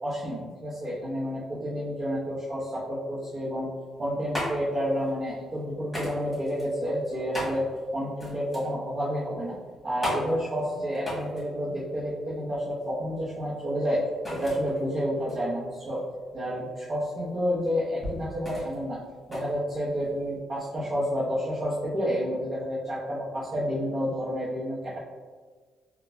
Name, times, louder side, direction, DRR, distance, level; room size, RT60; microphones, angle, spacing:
voice 1, 0.0-3.7 4.0-7.7 7.9-9.5 9.8-14.0 14.3-16.1 16.3-19.0 19.3-25.0, equal, 40° right, -10 dB, 0.9 m, -30 dB
sound 1, 3.8-20.4, left 1 dB, 10° left, 1.5 m, -38 dB
3.8 x 2.2 x 2.6 m, 1.5 s
cardioid pair, 90°, 0 cm